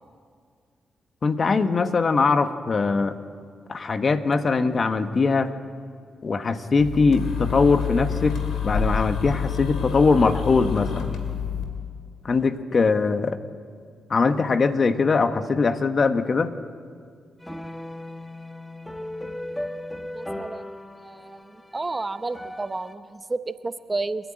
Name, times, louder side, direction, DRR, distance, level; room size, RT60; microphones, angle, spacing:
voice 1, 1.2-3.1 3.7-5.5 6.2-8.4 8.6-11.1 12.2-13.4 14.1-16.5, left 4 dB, 50° left, 10 dB, 1.2 m, -21 dB
sound 1, 6.8-11.6, left 7 dB, 80° left, 2.6 m, -28 dB
sound 2, 17.4-22.9, left 1 dB, 10° left, 1.3 m, -37 dB
voice 2, 20.1-20.7 21.0-24.3, right 3 dB, 30° right, 12 dB, 0.8 m, -31 dB
28.5 x 10.5 x 8.8 m, 2.1 s
supercardioid pair, 55°, 0 cm